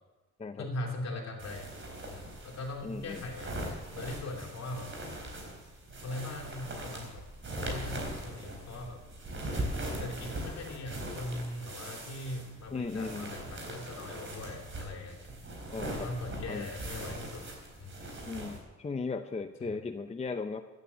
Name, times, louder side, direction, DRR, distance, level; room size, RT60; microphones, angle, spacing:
voice 1, 0.6-1.7 2.0-3.7 3.9-4.9 6.0-7.3 7.5-9.0 10.0-15.2 15.8-17.5 17.8-18.0 19.6-19.8, left 2 dB, 60° left, 1 dB, 3.0 m, -40 dB
sound 1, 1.4-18.6, right 1 dB, 40° right, 4.2 m, -40 dB
voice 2, 2.8-3.3 12.7-13.3 15.7-16.1 16.5-16.7 18.3-20.6, left 4 dB, 20° left, 7 dB, 0.7 m, -37 dB
15.0 x 9.2 x 6.9 m, 1.2 s
cardioid pair, 90°, 30 cm